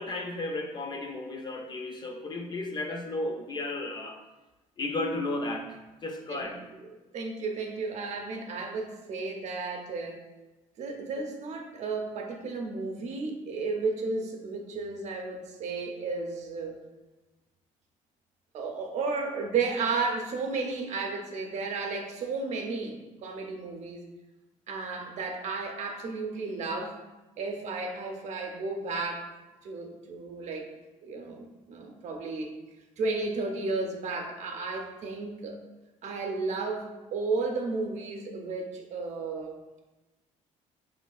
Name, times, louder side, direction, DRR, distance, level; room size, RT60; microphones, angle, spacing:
voice 1, 0.0-4.2 4.8-6.6, left 2 dB, 35° left, 4 dB, 0.5 m, -34 dB
voice 2, 7.1-10.2 10.8-16.8 18.5-24.1 24.7-27.0 27.4-29.3 29.6-30.7 31.0-32.5 33.0-35.6 36.0-39.6, right 3 dB, 55° right, 2 dB, 0.7 m, -33 dB
4.9 x 3.2 x 2.3 m, 1.1 s
cardioid pair, 120°, 14 cm